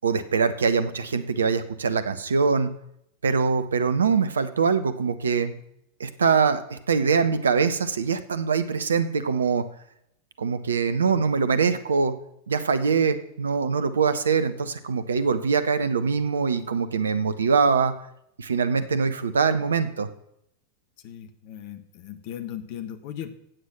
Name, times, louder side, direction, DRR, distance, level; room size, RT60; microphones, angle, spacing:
voice 1, 0.0-2.7 3.2-5.6 6.0-9.6 10.4-12.1 12.5-17.9 18.4-20.1, right 5 dB, 70° right, 12 dB, 1.0 m, -23 dB
voice 2, 21.0-23.3, left 10 dB, 45° left, 10 dB, 1.6 m, -37 dB
15.5 x 8.4 x 6.1 m, 0.77 s
figure-of-eight pair, 90°, 0 cm